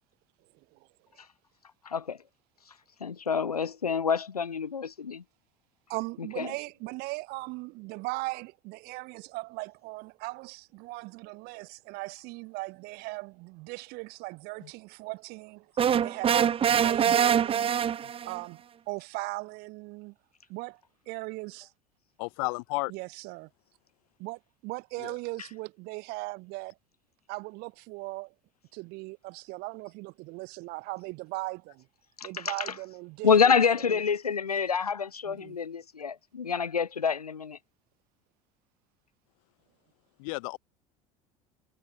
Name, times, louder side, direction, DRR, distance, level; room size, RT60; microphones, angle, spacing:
voice 1, 1.8-2.2 3.0-5.2 6.4-6.5 32.2-32.7 33.2-37.6, left 6 dB, 85° left, 1.6 m, -27 dB
voice 2, 5.9-15.7 16.0-17.8 18.3-20.1 20.5-20.8 21.1-21.7 22.9-23.5 24.2-26.7 27.3-28.3 28.7-31.9 32.2-33.5 33.8-34.0 35.3-35.6, right 25 dB, 55° right, 5.9 m, -39 dB
sound 1, 15.8-18.4, right 8 dB, 30° right, 0.9 m, -24 dB
voice 3, 22.2-22.9 25.0-25.2 40.2-40.6, left 28 dB, 65° left, 5.2 m, -33 dB
figure-of-eight pair, 70°, 19 cm